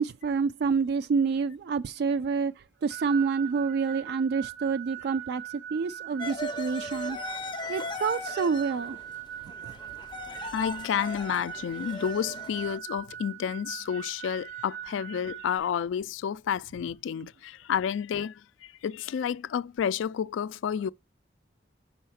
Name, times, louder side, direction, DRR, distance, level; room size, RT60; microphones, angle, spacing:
voice 1, 0.0-2.5 2.8-5.4 5.7-7.2 7.7-9.0 9.6-9.7, right 5 dB, 60° right, 0.3 m, -27 dB
sound 1, 2.9-15.6, right 11 dB, 75° right, 0.8 m, -41 dB
sound 2, 6.2-12.8, left 2 dB, 25° left, 0.5 m, -38 dB
voice 2, 10.3-20.9, left 8 dB, 85° left, 0.3 m, -30 dB
5.6 x 4.2 x 5.6 m
head